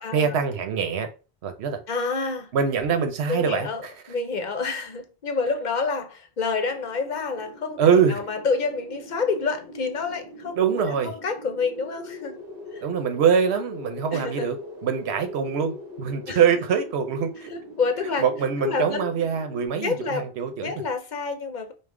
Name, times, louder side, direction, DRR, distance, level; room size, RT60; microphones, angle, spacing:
voice 1, 0.1-1.1 1.4-1.8 2.5-3.9 7.8-8.2 10.6-11.1 12.8-17.5 18.2-20.7, right 7 dB, 90° right, 1.0 m, -24 dB
voice 2, 1.9-2.5 3.3-12.4 12.7-12.8 14.1-14.5 16.3-16.4 17.5-18.3 18.6-19.1 19.8-20.3 20.6-21.7, left 4 dB, 55° left, 0.7 m, -28 dB
sound 1, 6.6-19.7, left 1 dB, 60° right, 1.3 m, -42 dB
5.3 x 2.1 x 3.6 m
omnidirectional pair, 1.1 m